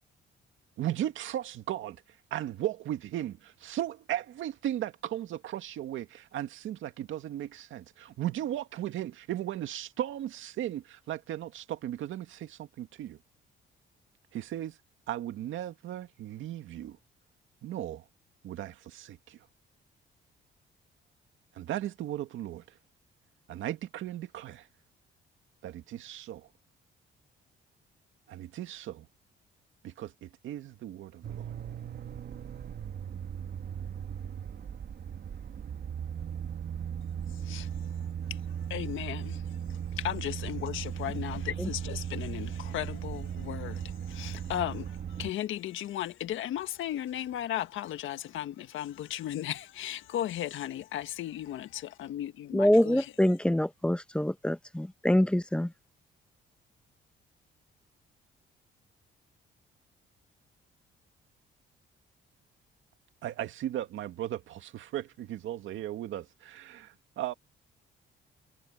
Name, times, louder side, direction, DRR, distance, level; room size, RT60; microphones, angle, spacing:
voice 1, 0.8-2.0 2.3-13.2 14.3-14.8 15.1-17.0 17.6-18.0 18.4-19.4 21.6-22.6 23.5-24.7 25.6-26.5 28.3-29.1 29.8-31.5 63.2-67.3, right 12 dB, 80° right, 2.2 m, -36 dB
sound 1, 31.2-45.3, right 8 dB, 55° right, 2.2 m, -37 dB
voice 2, 38.7-39.4 39.7-53.1, left 12 dB, 80° left, 1.5 m, -36 dB
voice 3, 52.5-55.7, left 1 dB, 5° left, 0.9 m, -25 dB
cardioid pair, 90°, 20 cm